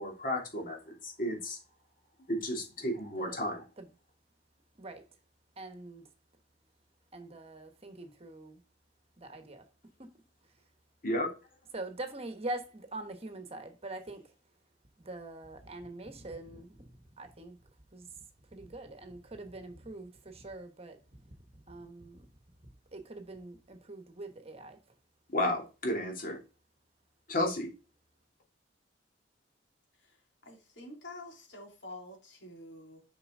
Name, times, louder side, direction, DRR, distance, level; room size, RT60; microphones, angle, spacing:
voice 1, 0.0-1.6 2.3-3.6 11.0-11.3 25.3-26.4 27.3-27.7, left 1 dB, 50° left, 2.8 m, -32 dB
voice 2, 5.6-6.1 7.1-8.6 9.2-9.7 10.0-10.2 11.7-14.3 15.0-17.6 17.9-18.2 18.5-22.3 22.9-24.8, right 2 dB, 35° right, 1.2 m, -44 dB
voice 3, 30.0-33.0, left 2 dB, 80° left, 3.6 m, -48 dB
6.9 x 5.7 x 3.7 m
head